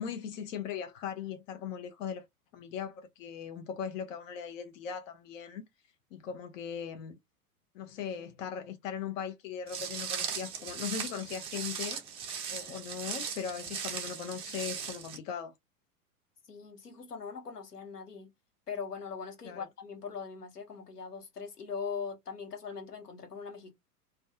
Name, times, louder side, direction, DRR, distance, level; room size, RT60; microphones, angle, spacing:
voice 1, 0.0-2.3 2.5-5.7 6.1-7.2 7.7-12.0 12.5-15.5 19.4-19.7, left 7 dB, 55° left, 0.7 m, -39 dB
Walk footsteps, 9.7-15.2, right 7 dB, 15° right, 0.3 m, -38 dB
voice 2, 16.5-18.3 18.7-23.7, left 5 dB, 85° left, 1.0 m, -41 dB
2.5 x 2.3 x 2.2 m
figure-of-eight pair, 90°, 46 cm